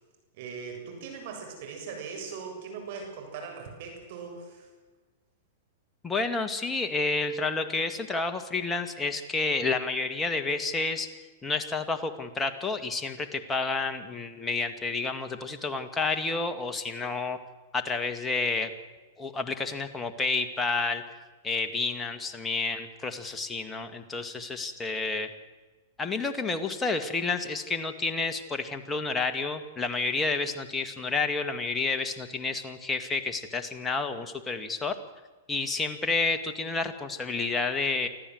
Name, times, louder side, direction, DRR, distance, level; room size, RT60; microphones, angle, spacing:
voice 1, 0.3-4.7, right 5 dB, 60° right, 3 dB, 7.4 m, -40 dB
voice 2, 6.0-11.1 11.4-17.4 17.7-18.7 19.2-21.0 21.4-25.3 26.0-35.0 35.5-38.1, left 3 dB, 15° left, 6 dB, 2.0 m, -30 dB
24.5 x 14.5 x 7.9 m, 1.3 s
hypercardioid pair, 120°, 0 cm